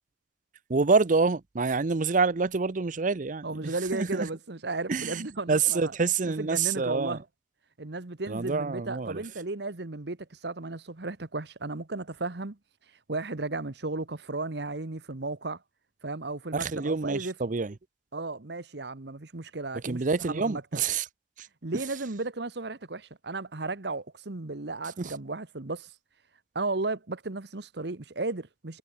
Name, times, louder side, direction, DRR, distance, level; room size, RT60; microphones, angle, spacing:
voice 1, 0.7-4.3 4.9-7.2 8.3-9.2 16.5-17.8 19.7-21.1 21.4-21.5 21.7-21.8 25.0-25.2, right 4 dB, 45° right, 0.6 m, -27 dB
voice 2, 3.4-5.9 6.4-7.2 7.8-12.6 13.1-15.6 16.0-17.3 18.1-20.0 20.3-20.6 21.6-25.9 26.5-28.8, right 3 dB, 65° right, 1.3 m, -34 dB
head